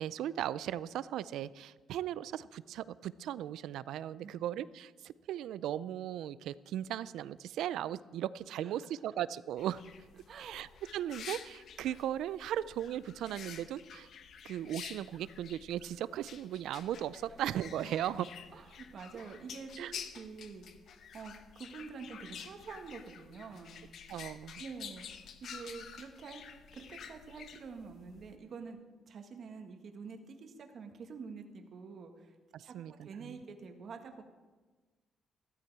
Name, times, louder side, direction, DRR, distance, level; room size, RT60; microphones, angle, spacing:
voice 1, 0.0-9.8 10.4-10.7 10.9-14.1 14.4-18.3 19.8-19.9 24.1-24.6 32.5-33.4, right 11 dB, 85° right, 18 dB, 0.4 m, -37 dB
sound 1, 9.6-28.3, left 7 dB, 65° left, 1.0 m, -50 dB
voice 2, 10.3-10.6 18.5-19.9 20.1-23.8 24.6-26.4 26.7-28.8 29.1-32.3 32.6-34.2, right 5 dB, 55° right, 4 dB, 1.5 m, -47 dB
14.5 x 13.0 x 4.7 m, 1.3 s
cardioid pair, 90°, 0 cm